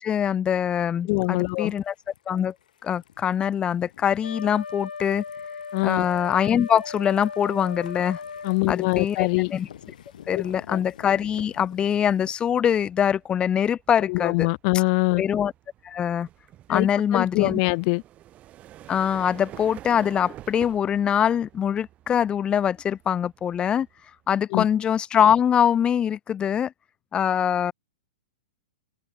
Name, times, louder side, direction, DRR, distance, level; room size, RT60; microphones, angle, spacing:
voice 1, 0.0-1.9 2.3-2.5 2.8-5.2 5.8-8.2 8.7-9.7 10.3-14.5 15.2-15.5 15.8-16.3 16.7-17.6 18.9-23.9 24.3-26.7 27.1-27.7, left 9 dB, 20° left, 1.3 m, -23 dB
voice 2, 1.0-1.7 5.7-6.0 8.4-9.5 10.3-10.4 10.7-10.8 14.1-15.2 16.7-16.9 17.1-18.0 24.5-24.7, left 32 dB, 45° left, 0.9 m, -23 dB
sound 1, 1.5-12.3, left 10 dB, 65° left, 5.5 m, -49 dB
Wind instrument woodwind instrument, 4.2-8.6, left 5 dB, 85° left, 6.5 m, -37 dB
sound 2, 6.9-7.2 7.6-24.3, right 13 dB, 30° right, 3.3 m, -49 dB
open air
hypercardioid pair, 120°, 5 cm